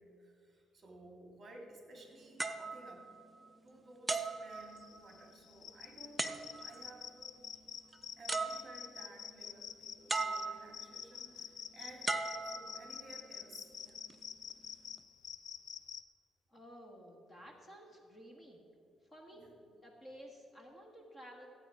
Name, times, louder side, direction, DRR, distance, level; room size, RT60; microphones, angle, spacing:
voice 1, 0.0-3.1 3.6-7.4 8.2-12.2 12.4-14.0 19.3-19.6, right 2 dB, 30° right, 1 dB, 2.2 m, -56 dB
sound 1, 2.4-3.6 4.1-5.2 6.2-6.9 7.9-8.0 8.3-9.1 10.1-10.9 12.1-13.2 13.9-14.1, right 3 dB, 10° right, 0.6 m, -38 dB
sound 2, 4.5-16.0, left 8 dB, 60° left, 0.4 m, -48 dB
voice 2, 16.5-18.6 19.1-19.4 19.8-21.5, equal, 20° left, 1 dB, 1.4 m, -53 dB
14.5 x 8.8 x 4.8 m, 2.6 s
cardioid pair, 135°, 0 cm